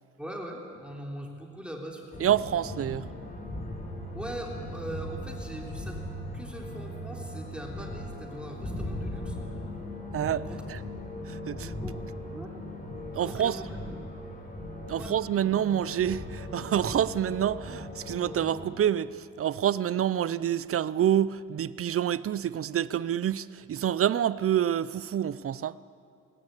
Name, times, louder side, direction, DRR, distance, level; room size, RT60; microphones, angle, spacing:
voice 1, 0.2-2.3 4.1-6.0 6.3-9.4 10.4-10.6 11.6-12.5 13.2-13.6 14.9-15.1, right 1 dB, 5° right, 3.4 m, -41 dB
sound 1, 2.1-18.7, left 1 dB, 30° left, 4.9 m, -38 dB
voice 2, 2.2-3.0 10.1-10.8 11.3-11.7 13.1-13.6 14.9-25.8, right 10 dB, 50° right, 0.6 m, -27 dB
19.5 x 18.5 x 8.3 m
cardioid pair, 90°, 30 cm